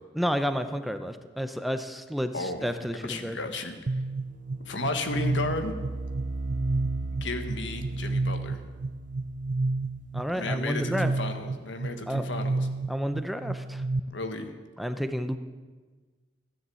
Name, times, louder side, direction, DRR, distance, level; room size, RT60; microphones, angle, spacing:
voice 1, 0.2-3.4 10.1-11.1 12.1-12.3 12.9-13.8 14.8-15.4, equal, ahead, 8 dB, 0.6 m, -30 dB
voice 2, 2.3-2.7 3.0-4.0 4.6-5.7 7.2-8.6 10.3-12.7 14.1-14.5, left 2 dB, 85° left, 7 dB, 1.5 m, -34 dB
sound 1, 3.9-14.0, right 2 dB, 45° right, 0.5 m, -31 dB
14.5 x 10.0 x 7.7 m, 1.4 s
head